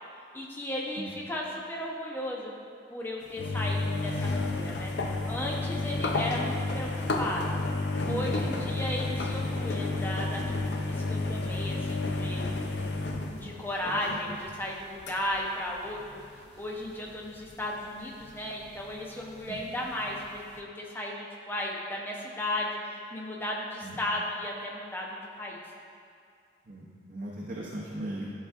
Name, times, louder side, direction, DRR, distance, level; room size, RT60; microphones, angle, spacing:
voice 1, 0.3-2.5 2.9-6.9 7.2-7.6 8.1-12.5 13.3-25.6, left 1 dB, 10° left, -3 dB, 0.7 m, -35 dB
sound 1, 3.3-15.3 15.6-20.6, left 2 dB, 75° left, 0.5 m, -31 dB
voice 2, 8.1-8.5 13.8-14.4 19.5-19.6 23.8-24.0 26.7-28.3, right 1 dB, 45° right, -5 dB, 0.7 m, -38 dB
10.5 x 4.9 x 2.5 m, 2.3 s
head